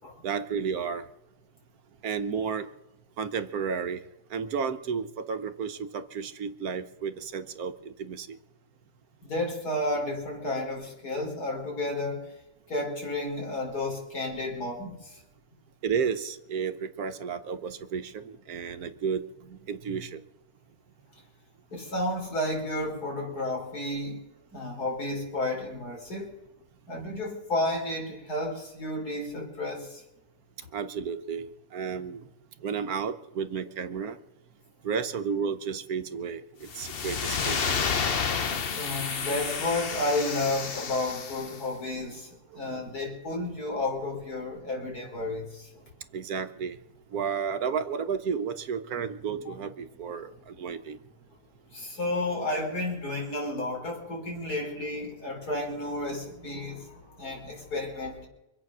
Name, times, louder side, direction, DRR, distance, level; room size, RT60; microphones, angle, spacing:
voice 1, 0.2-1.0 2.0-2.7 3.2-4.0 4.3-8.4 15.8-20.2 30.7-31.5 31.7-32.3 32.6-34.2 34.8-37.6 42.5-42.8 46.1-46.8 47.1-51.0, right 6 dB, 70° right, 10 dB, 1.4 m, -32 dB
voice 2, 9.2-12.3 12.7-15.2 21.7-24.2 24.5-26.3 26.9-30.0 38.4-45.8 49.5-49.6 51.7-58.3, left 1 dB, 80° left, 0 dB, 4.3 m, -32 dB
sound 1, 36.7-41.6, left 6 dB, 45° left, 1.0 m, -30 dB
25.0 x 8.5 x 6.2 m, 0.96 s
omnidirectional pair, 1.6 m